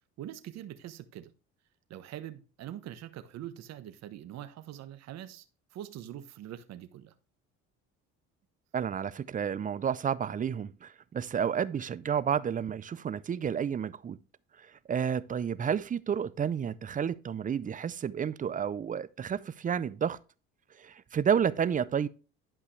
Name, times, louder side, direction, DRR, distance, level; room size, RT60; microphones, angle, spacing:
voice 1, 0.2-1.3 1.9-5.4 5.7-7.1, right 12 dB, 60° right, 1.1 m, -43 dB
voice 2, 8.7-14.2 14.9-20.2 20.8-22.1, right 8 dB, 25° right, 0.5 m, -31 dB
11.0 x 5.6 x 3.2 m
cardioid pair, 100°, 30 cm